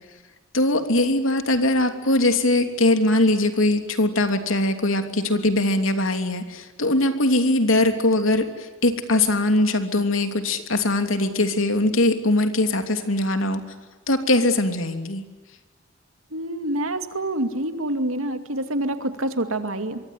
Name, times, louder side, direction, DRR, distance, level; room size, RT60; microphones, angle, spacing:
voice 1, 0.5-13.6 14.1-15.2, left 2 dB, 75° left, 7 dB, 3.1 m, -21 dB
voice 2, 16.3-20.0, right 1 dB, 85° right, 8 dB, 2.6 m, -27 dB
25.5 x 23.5 x 9.9 m, 1.3 s
head